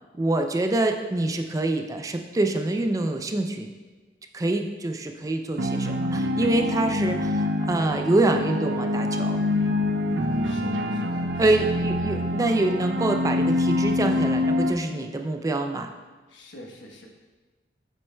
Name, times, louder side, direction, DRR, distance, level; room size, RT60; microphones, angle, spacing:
voice 1, 0.2-3.7 4.3-9.4 11.4-15.9, right 2 dB, 20° right, 5 dB, 0.3 m, -25 dB
sound 1, 5.6-14.7, left 1 dB, 70° right, 0.5 m, -25 dB
voice 2, 10.2-11.5 12.1-12.3 16.3-17.1, left 1 dB, 85° left, 1 dB, 1.1 m, -46 dB
7.5 x 7.5 x 2.2 m, 1.3 s
head